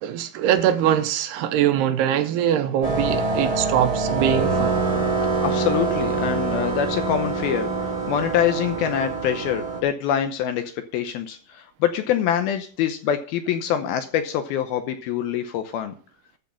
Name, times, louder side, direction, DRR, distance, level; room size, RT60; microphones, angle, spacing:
voice 1, 0.0-4.8, right 10 dB, 75° right, 2.7 m, -22 dB
sound 1, 2.8-9.8, right 3 dB, 15° right, 1.6 m, -25 dB
voice 2, 5.4-15.9, left 9 dB, 75° left, 2.4 m, -25 dB
13.5 x 6.4 x 5.8 m
omnidirectional pair, 5.0 m